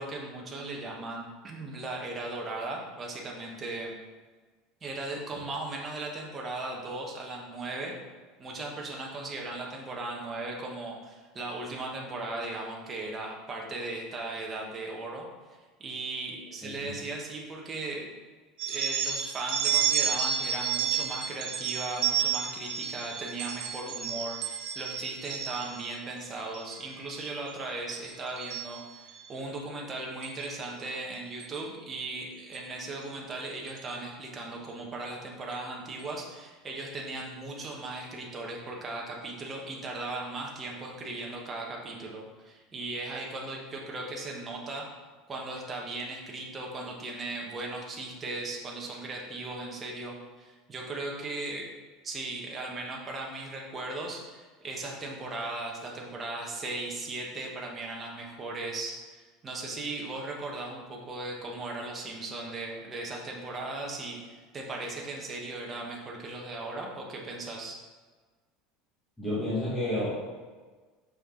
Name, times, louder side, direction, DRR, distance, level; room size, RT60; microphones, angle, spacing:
voice 1, 0.0-4.0 4.8-7.9 8.4-15.3 15.8-18.1 18.7-44.9 45.3-51.7 52.0-67.8, right 2 dB, 15° right, -1 dB, 1.0 m, -37 dB
sound 1, 18.6-25.9 26.4-26.8 27.1-27.5 27.9-29.3 30.2-30.5 31.4-31.6 32.5-32.6 33.0-33.1 33.7-33.9, right 9 dB, 55° right, 1.1 m, -31 dB
voice 2, 69.2-70.3, left 1 dB, 10° left, -9 dB, 1.4 m, -31 dB
6.5 x 5.7 x 3.7 m, 1.4 s
cardioid pair, 175°, 0 cm